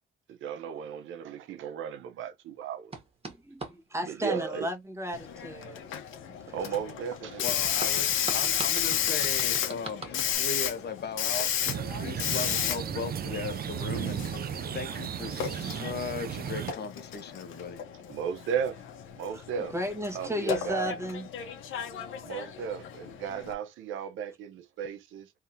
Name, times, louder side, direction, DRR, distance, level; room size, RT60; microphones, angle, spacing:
voice 1, 0.3-2.9 4.0-4.7 6.5-7.5 18.1-18.8 19.2-19.7 20.1-21.0 22.2-25.3, right 7 dB, 85° right, 1.0 m, -35 dB
sound 1, 2.9-3.7 7.5-10.4, right 3 dB, 30° right, 1.8 m, -40 dB
voice 2, 3.3-5.8 19.3-19.4 19.7-21.3, left 1 dB, 15° right, 1.6 m, -34 dB
Hiss, 5.1-23.5, left 9 dB, 80° left, 1.1 m, -33 dB
voice 3, 7.4-11.5 12.0-14.3 14.7-17.8, left 4 dB, 55° left, 1.2 m, -37 dB
sound 2, 11.6-16.7, right 9 dB, 50° right, 0.5 m, -35 dB
3.6 x 3.3 x 2.7 m
cardioid pair, 90°, 20 cm